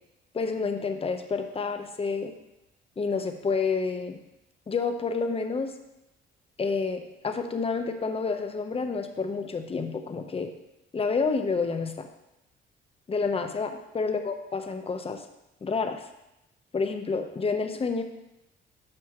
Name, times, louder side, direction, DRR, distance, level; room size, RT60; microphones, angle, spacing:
voice 1, 0.3-2.3 3.0-4.2 4.7-5.7 6.6-10.5 10.9-12.1 13.1-15.2 15.6-16.0 16.7-18.0, left 4 dB, 30° left, 6 dB, 0.8 m, -29 dB
9.7 x 6.1 x 3.0 m, 0.89 s
cardioid pair, 90°, 20 cm